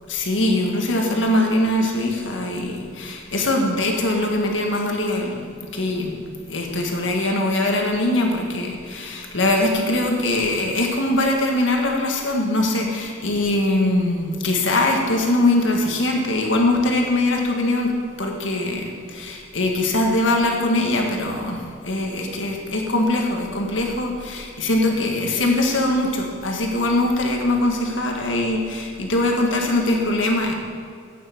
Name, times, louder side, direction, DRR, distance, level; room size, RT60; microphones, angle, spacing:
voice 1, 0.1-6.2 6.5-17.9 18.2-30.5, left 1 dB, 75° left, 1 dB, 1.7 m, -22 dB
8.6 x 8.0 x 7.2 m, 2.2 s
head